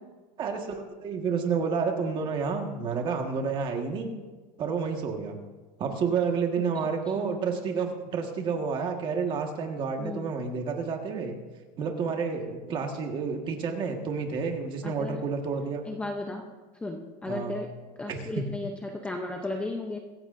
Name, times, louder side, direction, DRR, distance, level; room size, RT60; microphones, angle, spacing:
voice 1, 0.4-4.1 4.6-5.4 5.8-11.3 11.8-15.8 17.3-17.6 18.1-18.4, right 5 dB, 20° right, 3 dB, 1.6 m, -30 dB
voice 2, 14.8-15.2 15.8-16.4 16.8-17.7 18.0-20.0, left 2 dB, 5° left, 2 dB, 0.7 m, -34 dB
25.0 x 14.5 x 2.6 m, 1.3 s
supercardioid pair, 175°, 21 cm